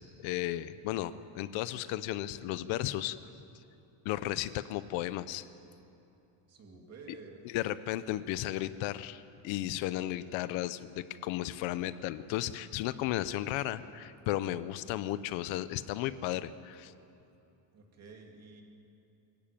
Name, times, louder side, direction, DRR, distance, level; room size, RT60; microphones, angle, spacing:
voice 1, 0.2-3.2 4.0-5.4 7.4-16.9, left 14 dB, 75° left, 14 dB, 0.9 m, -34 dB
voice 2, 6.5-7.4 17.7-18.6, right 4 dB, 30° right, 1 dB, 2.7 m, -51 dB
23.0 x 14.0 x 9.2 m, 2.8 s
cardioid pair, 180°, 47 cm